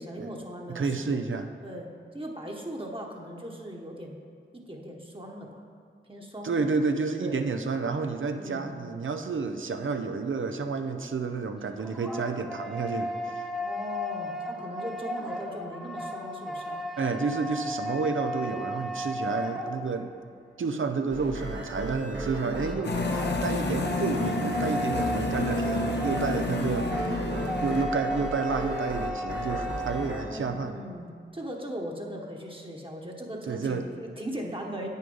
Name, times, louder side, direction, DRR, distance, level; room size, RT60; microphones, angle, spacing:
voice 1, 0.0-1.2 1.6-1.9 2.1-4.2 4.5-5.6 6.1-6.7 7.2-7.4 8.4-8.7 13.6-16.8 22.4-22.8 30.3-34.9, equal, 25° right, -1 dB, 1.1 m, -39 dB
voice 2, 0.7-1.5 6.4-13.1 17.0-20.1 20.6-26.9 27.6-30.7 33.5-33.8, right 4 dB, 80° right, 7 dB, 0.6 m, -30 dB
sound 1, 11.5-20.2 22.5-30.3, left 1 dB, ahead, 1.0 m, -35 dB
sound 2, 21.1-30.2, right 1 dB, 65° right, 1.4 m, -35 dB
sound 3, 22.8-27.9, left 2 dB, 60° left, 0.7 m, -30 dB
8.5 x 6.6 x 5.4 m, 2.2 s
wide cardioid pair, 65°, 20 cm